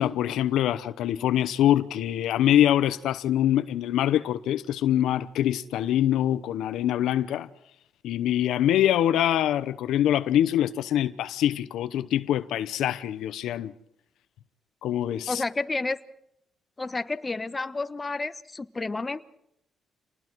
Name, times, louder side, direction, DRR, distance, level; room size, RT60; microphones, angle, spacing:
voice 1, 0.0-7.5 8.0-13.7 14.8-15.4, left 11 dB, 85° left, 0.9 m, -24 dB
voice 2, 15.3-16.0 16.8-19.2, left 3 dB, 20° left, 1.2 m, -30 dB
28.5 x 19.5 x 4.7 m
cardioid pair, 90°, 0 cm